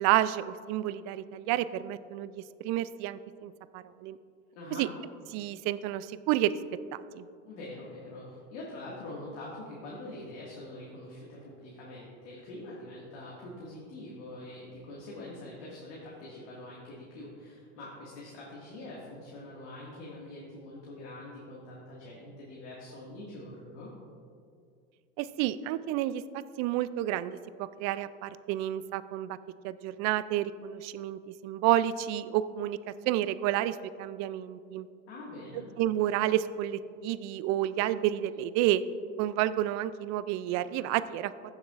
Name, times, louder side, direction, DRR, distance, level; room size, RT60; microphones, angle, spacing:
voice 1, 0.0-4.2 4.8-4.9 5.3-6.6 6.9-7.2 25.2-26.2 26.6-29.4 29.6-32.8 33.1-34.9 35.8-38.8 39.2-41.3, right 13 dB, 50° right, 15 dB, 0.5 m, -30 dB
voice 2, 4.5-4.9 7.4-23.9 35.1-35.6, left 1 dB, 70° left, -5 dB, 2.1 m, -44 dB
15.5 x 7.2 x 2.5 m, 2.3 s
hypercardioid pair, 85°, 36 cm